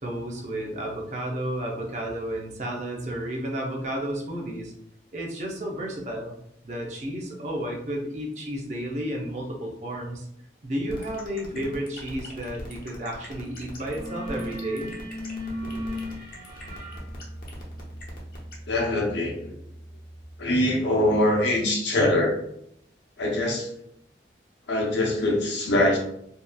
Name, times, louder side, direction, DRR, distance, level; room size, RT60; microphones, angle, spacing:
voice 1, 0.0-4.7 5.1-6.3 6.6-10.3 10.6-15.0, right 1 dB, 40° right, 0 dB, 0.5 m, -32 dB
sound 1, 10.9-18.5, left 2 dB, 50° left, 0.6 m, -44 dB
sound 2, 13.2-13.4 13.7-20.4, left 1 dB, 60° right, 1.1 m, -38 dB
voice 2, 18.7-19.5 20.4-22.4 23.2-23.7 24.7-26.0, left 1 dB, 85° left, -1 dB, 0.7 m, -23 dB
2.7 x 2.3 x 2.2 m, 0.72 s
head